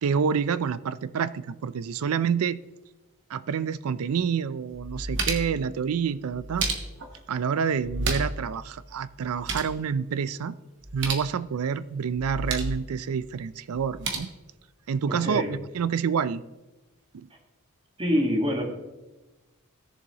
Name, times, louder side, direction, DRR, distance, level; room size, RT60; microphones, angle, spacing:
voice 1, 0.0-2.6 3.3-6.7 7.3-10.6 10.9-14.3 14.9-16.4 17.1-17.3, right 6 dB, 75° right, 0.4 m, -28 dB
sound 1, 4.2-4.3 4.7-5.6 6.3-7.2 7.8-8.5 8.7-8.8 9.2-9.8 10.8-11.3 12.1-12.8 13.7-14.2, right 3 dB, 55° right, 1.3 m, -31 dB
voice 2, 15.1-15.5 18.0-18.6, equal, 25° right, 1.5 m, -25 dB
17.0 x 7.0 x 2.9 m
head